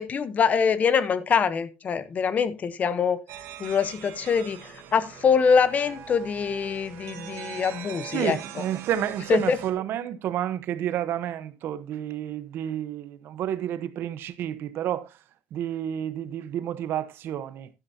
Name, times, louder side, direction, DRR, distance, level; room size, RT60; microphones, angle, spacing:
voice 1, 0.0-3.2 3.6-8.4 9.3-9.6, left 6 dB, 40° left, 0.8 m, -24 dB
sound 1, 3.3-9.7, right 9 dB, 80° right, 1.6 m, -42 dB
voice 2, 8.1-15.2 15.5-17.7, right 11 dB, 65° right, 0.9 m, -30 dB
12.0 x 9.8 x 2.7 m
cardioid pair, 135°, 4 cm